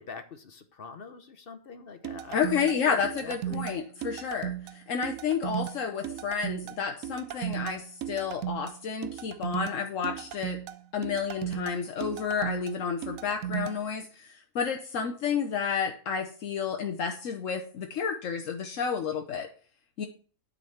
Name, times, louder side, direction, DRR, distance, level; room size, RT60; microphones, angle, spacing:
voice 1, 0.0-3.6, left 4 dB, 50° left, 8 dB, 1.0 m, -45 dB
sound 1, 2.0-13.8, right 12 dB, 90° right, 1.0 m, -36 dB
voice 2, 2.3-10.6 10.9-19.5 20.0-20.1, left 6 dB, 75° left, 4 dB, 1.2 m, -31 dB
9.5 x 3.9 x 6.9 m, 0.41 s
omnidirectional pair, 1.4 m